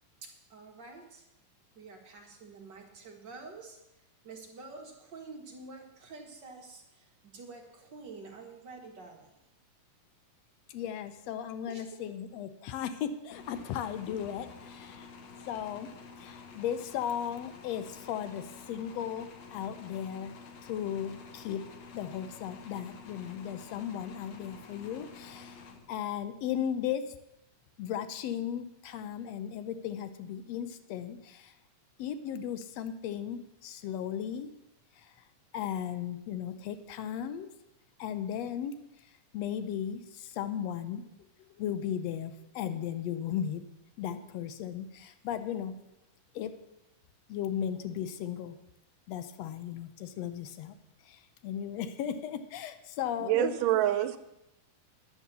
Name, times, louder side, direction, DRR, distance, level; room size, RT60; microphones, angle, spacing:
voice 1, 0.2-1.3 1.7-3.8 4.2-9.4 11.7-11.8, right 3 dB, 45° right, 1.5 m, -48 dB
voice 2, 10.7-15.1 15.5-15.9 16.2-20.3 20.6-21.6 21.9-27.1 27.8-31.6 32.0-34.5 34.9-35.2 35.5-37.5 38.0-41.0 41.5-43.6 44.0-45.7 46.3-46.5 47.3-48.6 49.1-50.7 51.0-53.6, left 9 dB, 80° left, 1.5 m, -36 dB
sound 1, 13.3-26.3, left 5 dB, 60° left, 2.0 m, -50 dB
voice 3, 53.2-54.2, right 13 dB, 80° right, 2.3 m, -26 dB
10.5 x 9.9 x 6.9 m
omnidirectional pair, 3.8 m